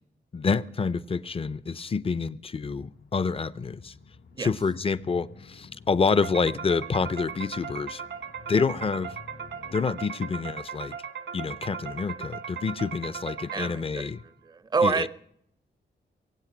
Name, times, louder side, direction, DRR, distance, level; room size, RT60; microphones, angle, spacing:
voice 1, 0.3-3.9 4.4-8.0 8.5-9.2 9.7-11.0 11.3-14.2 14.8-15.1, left 5 dB, 30° left, 0.5 m, -28 dB
sound 1, 2.7-9.8, left 4 dB, 85° left, 2.6 m, -51 dB
sound 2, 6.2-14.1, right 7 dB, 85° right, 1.6 m, -38 dB
voice 2, 13.5-14.1 14.4-15.1, right 4 dB, 20° right, 0.5 m, -27 dB
23.0 x 8.4 x 6.1 m
wide cardioid pair, 160°, 19 cm